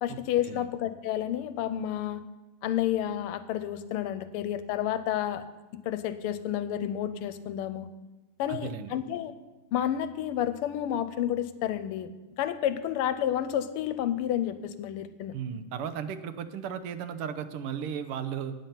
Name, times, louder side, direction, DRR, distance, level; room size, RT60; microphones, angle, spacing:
voice 1, 0.0-2.2 2.6-5.4 5.8-7.9 8.4-9.3 9.7-15.3, left 11 dB, 90° left, 12 dB, 1.5 m, -30 dB
voice 2, 8.5-8.9 15.3-18.5, right 8 dB, 90° right, 11 dB, 1.7 m, -35 dB
9.1 x 8.7 x 5.7 m, 1.1 s
omnidirectional pair, 2.4 m